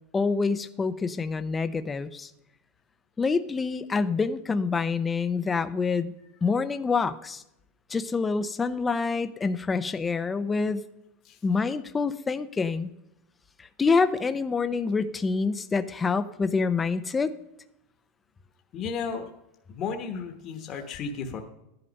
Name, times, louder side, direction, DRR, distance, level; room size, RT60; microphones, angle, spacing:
voice 1, 0.1-2.3 3.2-6.1 6.4-7.4 7.9-10.9 11.4-12.9 13.6-17.3, left 4 dB, 15° left, 11 dB, 0.5 m, -26 dB
voice 2, 18.7-19.3 19.7-21.4, left 5 dB, 30° left, 4 dB, 1.2 m, -33 dB
14.0 x 11.0 x 5.3 m, 0.85 s
supercardioid pair, 160°, 0 cm